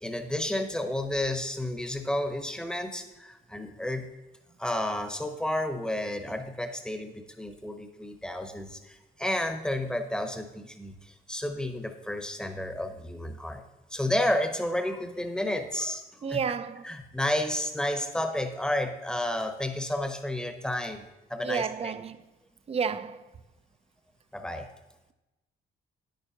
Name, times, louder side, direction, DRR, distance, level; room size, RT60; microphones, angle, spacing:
voice 1, 0.0-4.1 4.6-13.6 13.9-16.0 16.3-16.4 16.8-21.9 24.3-24.7, left 1 dB, 5° left, 0.9 m, -31 dB
voice 2, 16.2-16.8 21.4-22.2 22.7-23.2, right 6 dB, 30° right, 0.5 m, -31 dB
9.6 x 9.1 x 2.8 m
cardioid pair, 90°, 20 cm